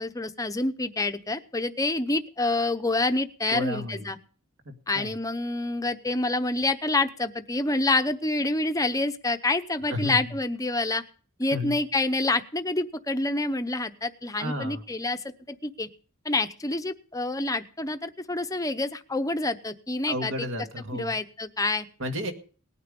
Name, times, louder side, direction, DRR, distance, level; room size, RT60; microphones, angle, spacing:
voice 1, 0.0-4.2 4.9-11.0 11.4-15.2 15.5-15.9 16.2-20.3 20.9-21.9, left 2 dB, 15° left, 9 dB, 0.8 m, -27 dB
voice 2, 3.5-4.1 4.7-5.1 9.9-10.4 11.5-11.8 14.4-14.8 20.1-21.2 22.0-22.3, left 1 dB, 65° right, 5 dB, 2.1 m, -32 dB
19.0 x 9.4 x 5.2 m, 0.42 s
head